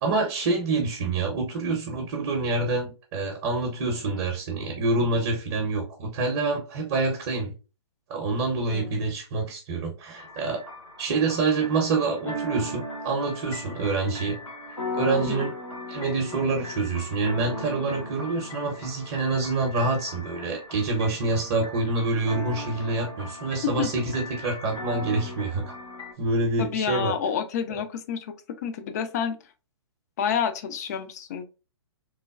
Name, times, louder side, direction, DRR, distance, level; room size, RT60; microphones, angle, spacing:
voice 1, 0.0-7.5 8.1-10.6 11.0-14.4 14.9-15.5 15.9-25.7 26.2-27.1, right 3 dB, 35° right, 1 dB, 0.6 m, -26 dB
voice 2, 8.7-9.0 15.2-15.5 23.6-23.9 26.6-28.3 28.6-29.4 30.2-31.5, left 7 dB, 35° left, 9 dB, 0.4 m, -29 dB
sound 1, 10.1-26.1, left 1 dB, 85° left, 1.2 m, -37 dB
3.1 x 2.1 x 2.3 m, 0.32 s
figure-of-eight pair, 125°, 15 cm